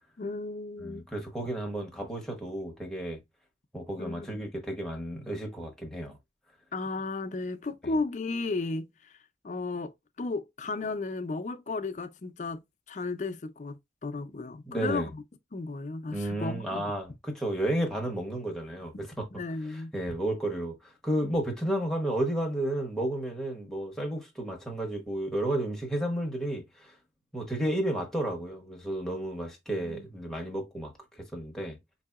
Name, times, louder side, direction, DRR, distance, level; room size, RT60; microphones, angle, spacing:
voice 1, 0.2-1.0 4.0-4.3 6.7-8.9 9.4-9.9 10.2-15.2 15.5-16.8 19.3-19.9 29.9-30.0, left 3 dB, 40° left, 0.4 m, -34 dB
voice 2, 0.8-3.2 3.7-6.2 14.7-15.1 16.1-19.3 19.7-27.0 27.3-31.8, right 1 dB, 5° left, 0.9 m, -32 dB
4.7 x 2.7 x 2.3 m
head